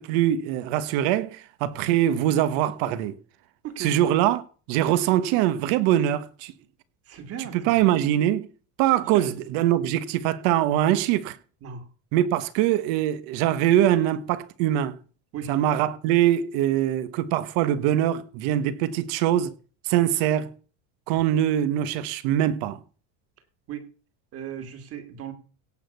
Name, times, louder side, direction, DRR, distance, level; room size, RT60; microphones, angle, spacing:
voice 1, 0.0-3.2 3.8-4.4 4.7-6.5 7.4-8.5 8.8-11.4 12.1-15.0 15.5-19.5 19.8-20.5 21.1-22.8, right 12 dB, 60° right, 1.4 m, -23 dB
voice 2, 3.6-3.9 7.1-7.8 9.1-9.3 11.6-11.8 15.3-15.5 23.7-23.9 24.3-25.3, right 8 dB, 35° right, 2.6 m, -36 dB
17.0 x 6.3 x 6.9 m
cardioid pair, 170°, 41 cm